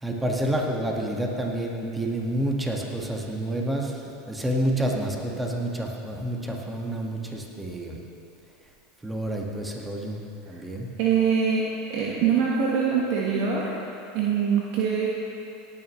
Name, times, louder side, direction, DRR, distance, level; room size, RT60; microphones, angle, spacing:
voice 1, 0.0-8.0 9.0-10.9, right 1 dB, 10° right, 0 dB, 1.8 m, -29 dB
voice 2, 11.0-13.7 14.1-15.1, right 6 dB, 60° right, -3 dB, 1.5 m, -23 dB
18.0 x 9.8 x 3.3 m, 2.7 s
hypercardioid pair, 90°, 0 cm